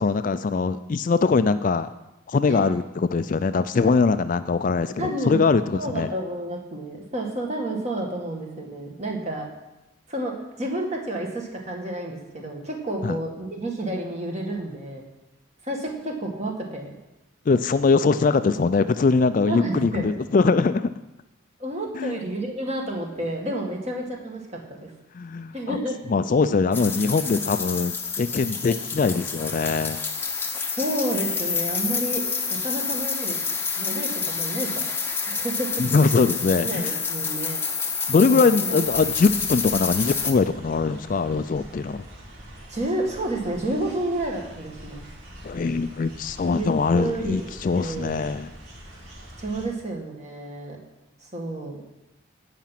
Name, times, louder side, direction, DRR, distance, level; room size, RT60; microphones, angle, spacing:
voice 1, 0.0-1.9 2.3-6.1 13.0-13.2 17.5-20.9 22.0-22.2 25.1-25.8 26.1-30.0 35.8-36.9 38.1-42.0 45.4-48.5, left 4 dB, 40° left, 12 dB, 0.3 m, -22 dB
voice 2, 5.0-5.4 5.7-9.5 10.1-10.3 10.6-15.1 15.6-17.0 19.5-20.1 21.6-24.9 25.5-26.0 30.8-32.2 32.5-33.4 33.8-34.9 35.2-35.7 36.6-37.6 38.3-38.8 42.7-45.1 46.5-46.7 46.9-48.2 49.4-50.8 51.2-51.8, right 1 dB, 35° right, 1 dB, 1.9 m, -30 dB
sound 1, 26.7-40.3, left 5 dB, 10° left, 0.8 m, -28 dB
sound 2, 38.8-49.6, equal, 85° right, 3.9 m, -44 dB
16.5 x 5.9 x 5.9 m, 0.97 s
head